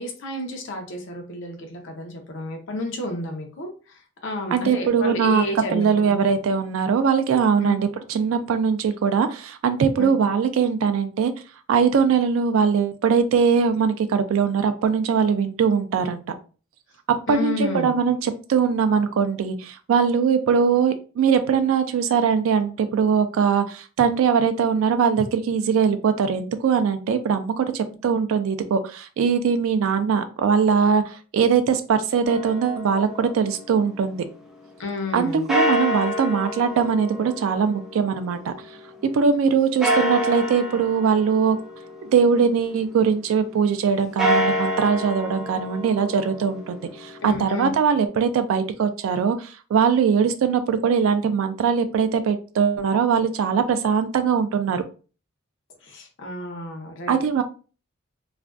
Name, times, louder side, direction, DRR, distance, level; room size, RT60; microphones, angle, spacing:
voice 1, 0.0-6.1 7.6-7.8 10.0-10.1 17.3-18.0 34.8-35.5 47.2-47.7 55.8-57.2, left 2 dB, 65° left, 3 dB, 0.6 m, -31 dB
voice 2, 4.5-5.4 5.7-11.3 11.7-16.4 17.1-34.2 35.1-38.5 39.1-41.6 42.0-54.8 57.1-57.4, right 6 dB, 85° right, 10 dB, 0.3 m, -21 dB
sound 1, 32.3-34.3 35.5-38.9 39.8-42.8 44.0-48.0, equal, ahead, 0.4 m, -28 dB
2.4 x 2.2 x 2.3 m, 0.37 s
head